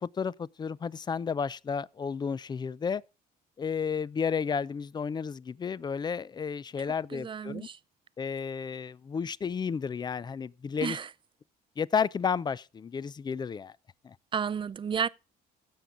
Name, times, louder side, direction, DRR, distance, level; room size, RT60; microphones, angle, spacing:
voice 1, 0.0-3.0 3.6-7.7 8.2-11.0 11.8-13.7 14.0-14.1, left 6 dB, 25° left, 0.4 m, -32 dB
voice 2, 7.1-7.8 10.8-11.1 14.3-15.1, right 7 dB, 30° right, 0.5 m, -32 dB
16.0 x 7.0 x 3.8 m
cardioid pair, 110°, 17 cm